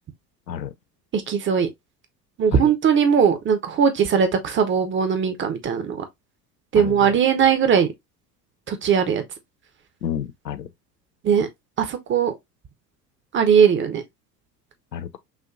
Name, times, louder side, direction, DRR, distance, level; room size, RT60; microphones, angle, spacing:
voice 1, 1.1-1.7 2.4-6.0 6.7-7.9 8.7-9.2 11.2-11.5 11.8-12.3 13.3-14.0, right 7 dB, 25° right, 0.8 m, -19 dB
voice 2, 6.7-7.1 10.0-10.7 14.9-15.2, left 9 dB, 85° left, 0.6 m, -31 dB
5.8 x 2.6 x 2.5 m
figure-of-eight pair, 75°, 49 cm